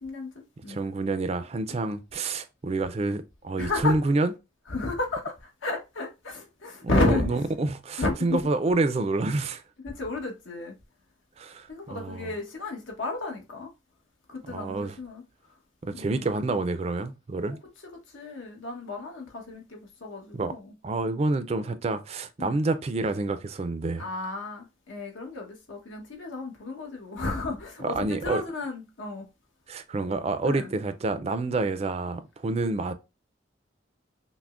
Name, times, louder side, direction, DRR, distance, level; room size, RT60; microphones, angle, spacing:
voice 1, 0.0-0.8 3.6-4.0 4.7-7.3 8.0-8.4 9.8-10.7 11.7-13.7 14.3-15.2 16.0-16.2 17.4-17.6 18.1-20.7 22.4-22.6 24.0-29.3 30.5-30.7, left 2 dB, 85° left, 1.1 m, -32 dB
voice 2, 0.6-4.3 6.8-9.6 11.4-12.3 14.5-15.0 15.8-17.6 20.3-20.5 20.8-24.1 27.8-28.4 29.7-32.9, right 3 dB, 35° right, 0.3 m, -28 dB
5.8 x 2.1 x 2.4 m
head